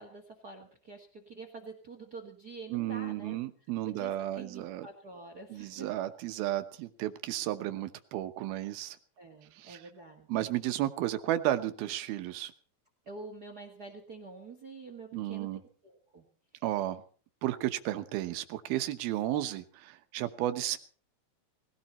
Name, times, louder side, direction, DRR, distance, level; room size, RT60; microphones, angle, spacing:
voice 1, 0.0-3.4 3.8-5.9 9.2-10.5 13.0-15.5 15.8-16.2, right 3 dB, 35° right, 6 dB, 1.7 m, -47 dB
voice 2, 2.7-4.9 5.5-9.0 9.5-9.8 10.3-12.5 15.1-15.6 16.6-17.0 17.4-20.8, right 14 dB, 85° right, 9 dB, 2.9 m, -33 dB
19.5 x 16.5 x 4.3 m, 0.42 s
omnidirectional pair, 4.2 m